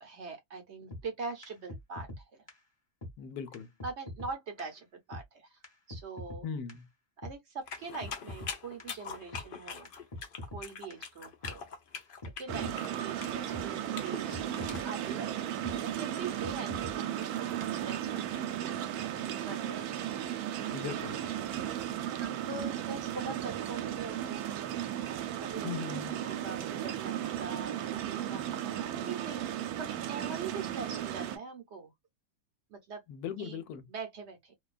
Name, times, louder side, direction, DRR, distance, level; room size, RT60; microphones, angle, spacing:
voice 1, 0.0-2.4 3.8-5.6 5.9-6.5 7.2-9.9 10.5-11.7 12.4-20.2 22.2-24.5 25.4-29.5 29.8-31.9 32.7-33.0 33.4-33.6 33.9-34.5, right 4 dB, 60° right, 0.8 m, -43 dB
sound 1, 0.9-1.0 1.4-1.5 1.7-2.2 2.5-2.6 3.0-3.1 3.5-3.6 3.8-4.3 4.6-4.7 5.1-5.2 5.6-5.7 5.9-6.4 6.7-6.8 7.2-7.3 7.7-8.5 8.8-8.9 9.3-9.4 9.9-10.0 10.1-10.6 10.9-11.0 11.4-11.5 12.0-12.1 12.2-12.7 13.0-13.1 13.5-13.7 14.1-14.2 14.3-14.8 15.1-15.2 15.6-15.8 16.2-16.3 16.4-16.9 17.2-17.3, left 1 dB, 25° left, 0.7 m, -42 dB
voice 2, 3.2-3.7 6.4-6.8 12.6-12.7 20.7-21.2 25.6-26.1 33.1-33.9, left 7 dB, 90° left, 1.1 m, -39 dB
sound 2, 7.7-14.8, left 6 dB, 65° left, 0.5 m, -43 dB
sound 3, 12.5-31.4, right 11 dB, 85° right, 1.1 m, -35 dB
2.6 x 2.3 x 2.3 m
omnidirectional pair, 1.6 m